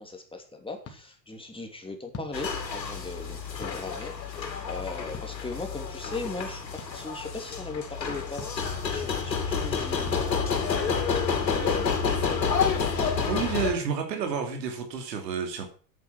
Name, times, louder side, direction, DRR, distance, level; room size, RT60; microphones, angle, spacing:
voice 1, 0.0-8.4 8.8-11.9, left 3 dB, 10° left, 3 dB, 2.9 m, -39 dB
sound 1, 0.8-1.0 2.1-2.3 3.6-3.8 5.1-5.3 6.8-6.9 8.3-8.5 10.0-10.2 11.3-11.5 12.4-12.5, left 4 dB, 30° left, 2.8 m, -41 dB
sound 2, 2.3-13.7, left 5 dB, 90° left, 2.6 m, -29 dB
voice 2, 13.3-15.7, right 6 dB, 75° right, 4 dB, 3.0 m, -30 dB
9.1 x 8.4 x 6.1 m, 0.41 s
hypercardioid pair, 85°, 50 cm